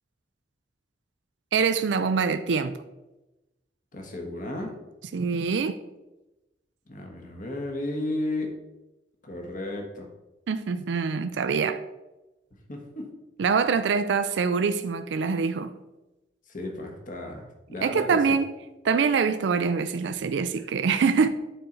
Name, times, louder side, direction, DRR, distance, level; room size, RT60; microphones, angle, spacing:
voice 1, 1.5-2.8 5.1-5.8 10.5-11.8 13.4-15.7 17.8-18.5 18.8-21.3, right 5 dB, 80° right, 0.4 m, -24 dB
voice 2, 3.9-4.7 6.9-8.6 9.2-10.1 12.7-13.1 16.5-18.4, left 1 dB, 50° left, 1.2 m, -34 dB
9.1 x 4.3 x 3.9 m
head